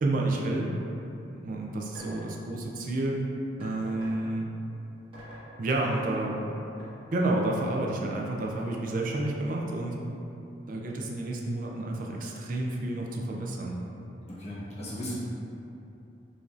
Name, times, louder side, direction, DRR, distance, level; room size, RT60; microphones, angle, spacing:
voice 1, 0.0-0.7 1.3-3.2 3.6-4.5 5.6-6.6 7.1-9.9 10.7-13.8, right 2 dB, 50° right, -1 dB, 0.3 m, -30 dB
sound 1, 1.9-2.3 3.6-4.2 5.1-5.5 6.8-6.9, right 1 dB, 30° right, 1.4 m, -46 dB
voice 2, 14.3-15.2, equal, 35° left, -8 dB, 0.9 m, -36 dB
4.9 x 2.6 x 2.4 m, 2.8 s
head